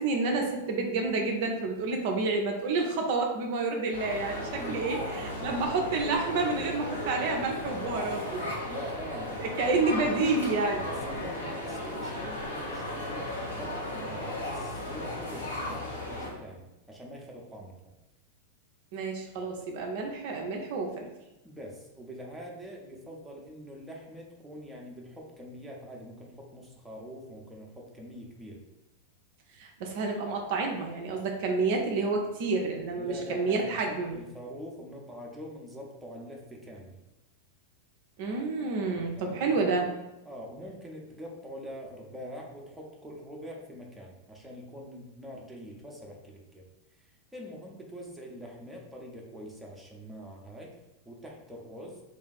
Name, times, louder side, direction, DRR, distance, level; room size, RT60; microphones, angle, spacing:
voice 1, 0.0-8.6 9.4-10.9 18.9-21.1 29.6-34.2 38.2-39.9, right 3 dB, 50° right, 2 dB, 0.4 m, -29 dB
sound 1, 3.9-16.3, left 1 dB, 70° left, 0.8 m, -36 dB
voice 2, 4.5-5.2 8.7-10.3 10.9-17.7 21.4-28.6 33.0-37.0 39.0-39.8 40.2-46.6 47.0-50.7 51.0-52.0, equal, 5° right, -2 dB, 0.6 m, -44 dB
2.5 x 2.4 x 3.9 m, 0.98 s
figure-of-eight pair, 90°, 0 cm